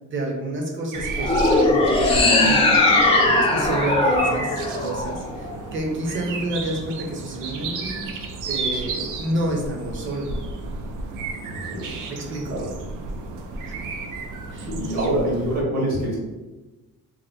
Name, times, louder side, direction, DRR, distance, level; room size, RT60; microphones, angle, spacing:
voice 1, 0.0-2.8 3.2-8.0 8.5-10.3 12.1-12.5 14.5-14.7 15.0-15.2, right 1 dB, 40° right, -1 dB, 0.7 m, -29 dB
sound 1, 0.9-15.6, right 3 dB, 90° right, 0.5 m, -32 dB
sound 2, 1.2-5.6, left 2 dB, 20° left, 0.4 m, -19 dB
voice 2, 11.5-12.0 12.5-12.7 14.7-16.2, right 1 dB, 60° right, -4 dB, 1.4 m, -25 dB
2.9 x 2.0 x 3.9 m, 1.1 s
cardioid pair, 160°, 31 cm